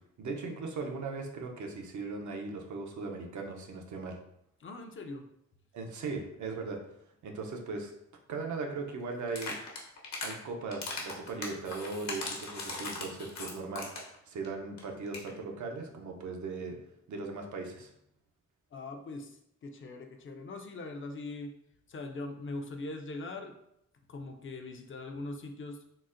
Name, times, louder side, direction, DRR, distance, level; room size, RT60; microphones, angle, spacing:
voice 1, 0.2-4.2 5.7-6.8 7.2-7.9 8.3-9.6 10.2-13.9 14.3-16.8 17.1-17.9, right 3 dB, 70° right, 2 dB, 0.6 m, -38 dB
voice 2, 4.6-5.3 18.7-21.6 21.9-23.5 24.1-25.8, left 2 dB, 40° left, 5 dB, 0.5 m, -41 dB
sound 1, 9.3-10.3 10.7-14.2 14.4-14.5 14.8-14.9 15.1-15.3, left 3 dB, 65° left, 0.9 m, -38 dB
3.9 x 2.1 x 2.5 m, 0.76 s
cardioid pair, 75°, 30 cm